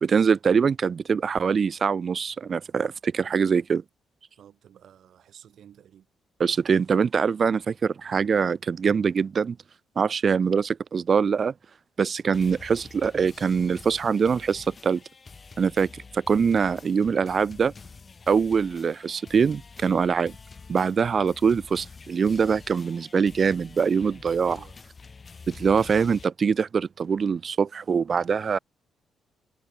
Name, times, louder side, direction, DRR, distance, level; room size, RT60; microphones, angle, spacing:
voice 1, 0.0-3.8 6.4-9.6 10.0-11.5 12.0-15.0 15.6-17.7 18.3-20.3 20.7-24.6 25.5-28.6, right 6 dB, 45° right, 0.4 m, -23 dB
voice 2, 4.4-6.1 24.4-24.8, right 10 dB, 65° right, 2.4 m, -51 dB
sound 1, 12.3-26.2, left 4 dB, 35° left, 1.5 m, -47 dB
cardioid pair, 90°, 0 cm